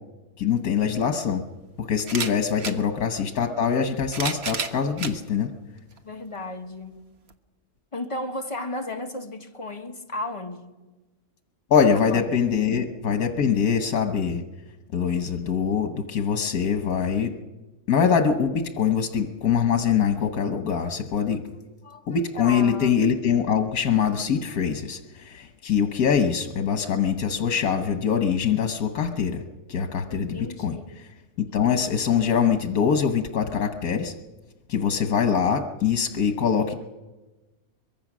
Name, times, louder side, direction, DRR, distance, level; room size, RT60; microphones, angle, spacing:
voice 1, 0.4-1.4 1.8-5.5 11.7-14.4 14.9-17.3 17.9-21.4 22.1-29.4 29.7-30.8 31.4-34.1 34.7-36.7, left 7 dB, 85° left, 1.6 m, -23 dB
sound 1, 0.6-0.7 2.0-2.8 3.8-5.2 5.9-6.0 7.3-7.4, right 5 dB, 50° right, 1.3 m, -31 dB
voice 2, 6.0-7.0 7.9-10.8 11.9-12.2 12.6-12.8 21.6-22.1 22.3-23.0 30.1-30.9, left 1 dB, 25° left, 1.4 m, -34 dB
23.5 x 22.5 x 6.2 m
omnidirectional pair, 1.5 m